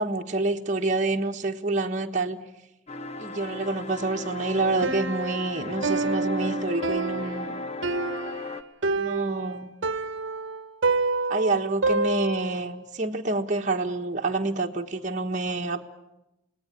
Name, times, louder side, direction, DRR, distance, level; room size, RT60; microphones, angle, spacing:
voice 1, 0.0-2.4 3.2-7.6 8.9-9.7 11.3-15.8, right 2 dB, 40° right, 1 dB, 1.4 m, -27 dB
sound 1, 2.9-8.6, left 3 dB, 35° left, 1.2 m, -36 dB
Piano, 4.8-12.7, right 3 dB, 75° right, 1.1 m, -28 dB
27.5 x 19.0 x 9.8 m, 0.94 s
head